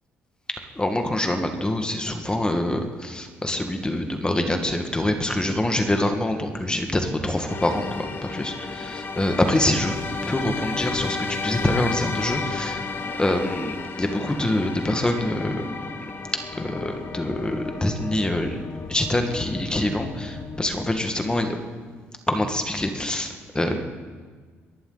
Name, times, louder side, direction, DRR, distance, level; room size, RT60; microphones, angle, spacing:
voice 1, 0.8-9.9 10.2-12.8 13.2-16.1 16.6-18.6 18.9-21.6 22.3-23.8, left 1 dB, 15° left, 5 dB, 1.8 m, -25 dB
sound 1, 7.5-21.0, left 4 dB, 45° left, 1.3 m, -33 dB
22.5 x 11.0 x 4.1 m, 1.5 s
supercardioid pair, 65°, 5 cm